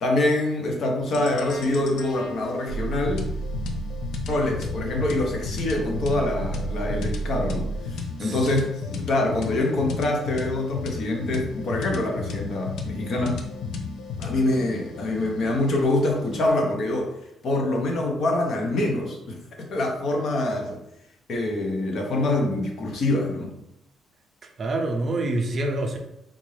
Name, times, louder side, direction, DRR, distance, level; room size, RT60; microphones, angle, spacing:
voice 1, 0.0-3.3 4.3-13.4 14.2-17.1 17.4-19.4 19.7-20.8 21.3-23.5, left 1 dB, 50° left, 1 dB, 0.8 m, -25 dB
sound 1, 1.1-16.5, left 5 dB, 75° left, 0.5 m, -34 dB
sound 2, 2.7-7.9, right 4 dB, 85° right, 0.5 m, -32 dB
voice 2, 24.4-26.0, right 2 dB, 35° right, 2 dB, 0.4 m, -27 dB
3.8 x 2.5 x 3.2 m, 0.84 s
cardioid pair, 165°, 0 cm